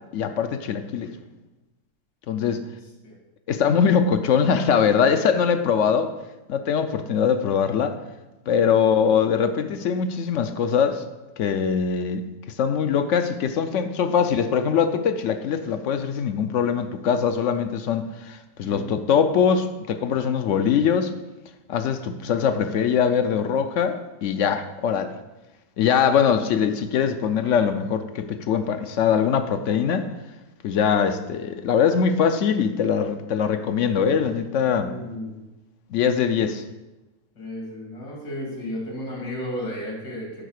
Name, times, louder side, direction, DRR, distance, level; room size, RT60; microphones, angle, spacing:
voice 1, 0.1-1.1 2.3-2.6 3.5-6.1 6.5-8.0 8.5-11.0 11.4-12.3 12.6-21.1 21.7-25.2 25.8-30.1 30.6-34.9 35.9-36.6, left 7 dB, 65° left, 9 dB, 0.8 m, -22 dB
voice 2, 18.6-19.0 34.8-35.4 37.3-40.3, left 1 dB, 85° left, -3 dB, 3.2 m, -34 dB
10.0 x 4.0 x 6.4 m, 1.1 s
omnidirectional pair, 1.7 m